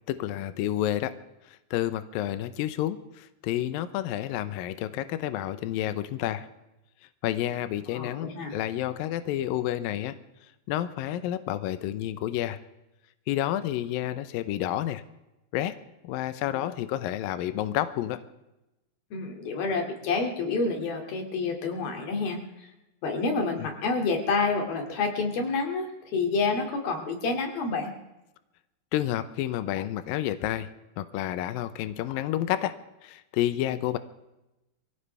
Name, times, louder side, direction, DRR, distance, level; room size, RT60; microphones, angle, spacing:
voice 1, 0.1-1.2 1.5-6.5 7.2-10.1 10.7-12.6 13.3-15.0 15.5-15.7 16.0-18.2 23.6-23.7 28.9-30.7 31.0-32.7 33.0-34.0, left 13 dB, 85° left, 12 dB, 2.0 m, -30 dB
voice 2, 7.9-8.5 19.1-22.4 23.0-27.9, left 4 dB, 60° left, 3 dB, 4.1 m, -28 dB
23.5 x 16.5 x 3.4 m, 0.95 s
omnidirectional pair, 5.1 m